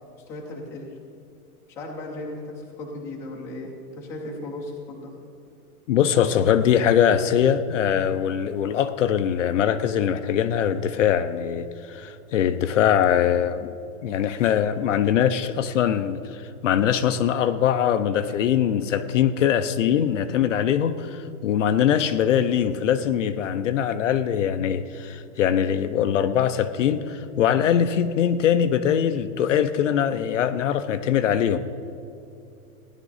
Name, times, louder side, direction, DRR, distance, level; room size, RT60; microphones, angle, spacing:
voice 1, 0.3-0.9 1.7-5.2, left 2 dB, 5° left, -3 dB, 0.6 m, -36 dB
voice 2, 5.9-13.7 14.0-31.6, left 9 dB, 55° left, 10 dB, 0.6 m, -22 dB
16.0 x 11.0 x 4.0 m, 2.7 s
supercardioid pair, 175°, 45 cm